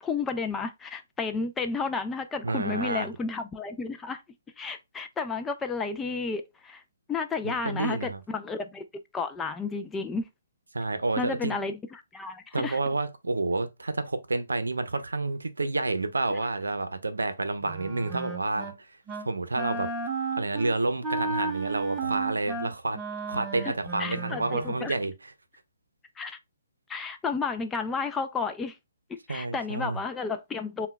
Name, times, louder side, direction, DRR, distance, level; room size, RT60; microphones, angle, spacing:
voice 1, 0.0-4.2 4.6-6.8 7.1-8.8 9.1-10.2 11.2-12.8 23.6-23.7 24.0-25.0 26.2-26.4 26.9-28.8 29.1-30.9, left 4 dB, 10° left, 0.4 m, -32 dB
voice 2, 2.4-3.1 7.4-8.2 10.7-11.6 12.5-18.9 19.2-19.9 20.4-23.0 23.3-25.3 29.3-30.0, right 2 dB, 85° right, 0.6 m, -29 dB
Wind instrument woodwind instrument, 17.6-18.8 19.1-19.3 19.6-24.8, right 3 dB, 15° right, 0.8 m, -33 dB
5.6 x 2.2 x 2.2 m
hypercardioid pair, 140°, 0 cm